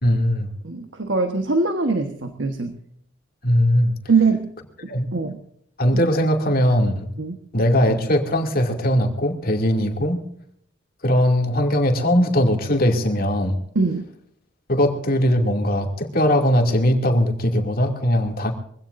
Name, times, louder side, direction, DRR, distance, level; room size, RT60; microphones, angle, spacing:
voice 1, 0.0-0.5 3.4-3.9 4.9-5.1 5.8-7.1 7.5-10.2 11.0-13.6 14.7-18.5, equal, 50° left, 3 dB, 2.6 m, -20 dB
voice 2, 0.6-2.7 4.1-4.5 5.1-5.4 7.2-7.4 13.7-14.1, right 4 dB, 70° right, 6 dB, 1.4 m, -22 dB
24.0 x 16.5 x 2.6 m, 0.69 s
head